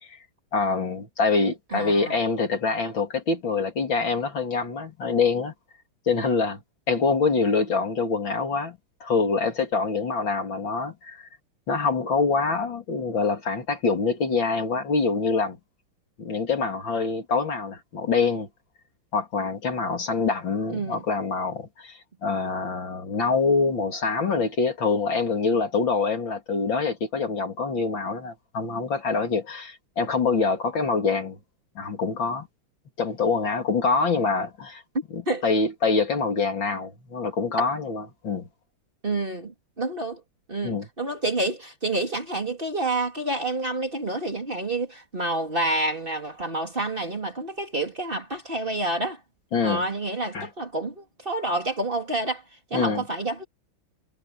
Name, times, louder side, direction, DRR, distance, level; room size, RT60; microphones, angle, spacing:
voice 1, 0.5-5.5 6.1-6.6 6.9-11.3 11.7-15.6 16.2-18.5 19.1-31.4 31.7-32.5 33.0-34.8 35.1-38.5 40.6-40.9 49.5-49.8 50.3-50.5 52.7-53.0, left 4 dB, 60° left, 3.4 m, -25 dB
voice 2, 1.7-2.1 20.7-21.0 35.3-35.4 39.0-40.2 40.5-49.2 49.6-52.4 52.7-53.4, right 2 dB, 25° right, 3.0 m, -28 dB
omnidirectional pair, 2.4 m